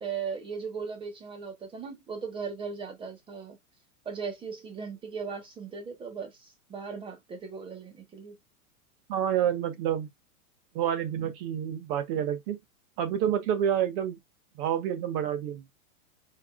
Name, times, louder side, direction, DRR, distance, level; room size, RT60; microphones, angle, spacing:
voice 1, 0.0-3.6 4.0-8.4, right 5 dB, 10° right, 1.0 m, -38 dB
voice 2, 9.1-10.1 10.7-12.6 13.0-14.2 14.6-15.6, right 9 dB, 40° right, 1.3 m, -28 dB
4.8 x 4.0 x 2.4 m
supercardioid pair, 150°, 43 cm